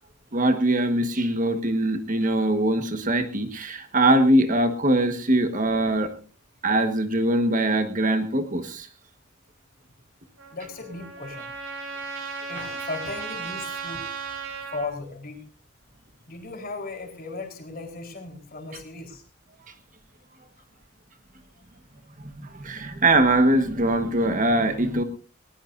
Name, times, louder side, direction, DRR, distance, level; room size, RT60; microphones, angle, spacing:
voice 1, 0.3-6.1 6.6-8.9 22.2-25.0, right 1 dB, 40° right, 8 dB, 1.5 m, -22 dB
Trumpet, 10.4-14.9, right 4 dB, 75° right, 5.7 m, -35 dB
voice 2, 10.5-11.5 12.5-14.0 14.7-15.4 16.3-19.2, left 3 dB, 45° left, 3 dB, 4.1 m, -36 dB
20.5 x 19.5 x 2.6 m, 0.36 s
head